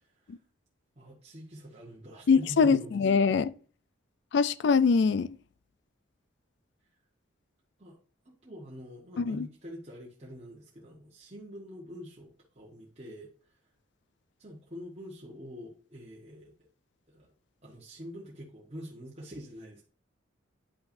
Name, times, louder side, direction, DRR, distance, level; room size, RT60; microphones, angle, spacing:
voice 1, 1.0-3.0 7.8-8.0 8.2-13.6 14.4-16.5 17.1-17.3 17.6-19.8, equal, 30° right, 1.2 m, -45 dB
voice 2, 2.3-3.5 4.3-5.4 9.2-9.5, left 5 dB, 60° left, 0.3 m, -23 dB
9.9 x 5.6 x 2.6 m
head